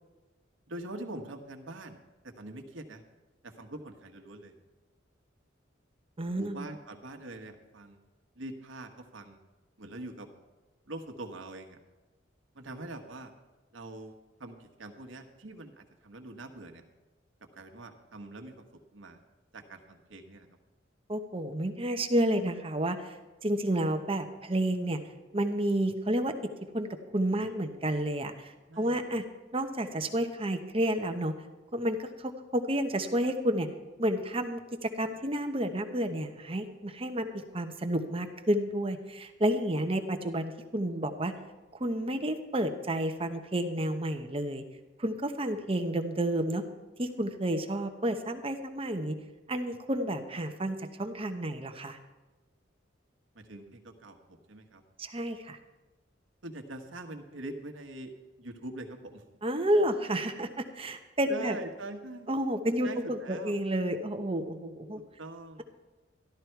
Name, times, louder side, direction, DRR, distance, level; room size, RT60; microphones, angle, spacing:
voice 1, 0.7-2.0 2.2-3.0 3.4-4.5 6.4-8.0 8.4-9.4 9.8-10.3 10.9-11.8 12.5-13.3 13.7-14.1 14.4-16.8 17.5-18.6 18.9-19.2 19.5-20.5 28.7-29.0 53.3-54.8 56.4-58.1 58.4-59.2 61.3-62.3 62.8-63.5 65.2-65.6, right 2 dB, 80° right, 5 dB, 1.3 m, -43 dB
voice 2, 6.2-6.7 21.1-23.2 23.4-25.0 25.3-26.3 26.7-26.9 27.1-29.2 29.5-31.3 31.7-33.7 34.0-37.3 37.5-41.3 41.8-44.6 45.0-46.6 47.0-49.1 49.5-52.0 55.0-55.6 59.4-61.6 62.3-65.0, right 1 dB, 30° right, 6 dB, 1.0 m, -30 dB
13.0 x 12.5 x 4.6 m, 1.2 s
head